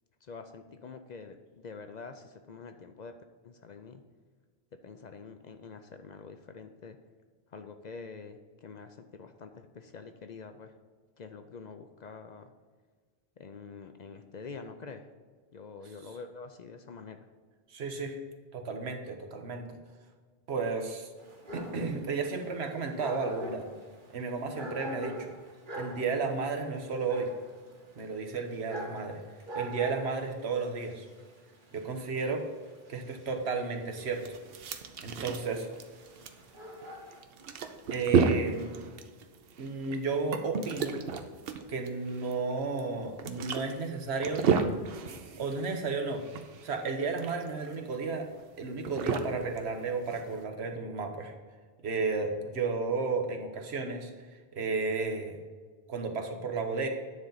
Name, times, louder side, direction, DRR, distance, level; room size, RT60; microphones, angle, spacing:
voice 1, 0.2-3.1 3.4-4.0 4.8-7.0 7.5-10.7 11.2-12.5 13.4-15.1 15.5-17.2, left 4 dB, 55° left, 7 dB, 0.5 m, -46 dB
voice 2, 17.7-18.2 18.5-19.8 20.5-21.1 21.5-23.7 24.1-25.3 25.7-27.3 28.0-29.2 29.5-31.1 31.7-32.5 32.9-34.2 35.0-35.7 37.9-38.7 39.6-41.0 41.7-44.5 45.4-46.2 46.6-48.3 48.6-51.3 51.8-54.1 54.5-55.4 55.9-56.9, right 4 dB, 85° right, 4 dB, 1.2 m, -33 dB
Dog, 21.2-37.2, right 1 dB, 50° right, 1.3 m, -45 dB
sound 1, 33.9-50.4, right 5 dB, 70° right, 0.9 m, -33 dB
9.5 x 3.9 x 5.5 m, 1.5 s
omnidirectional pair, 1.1 m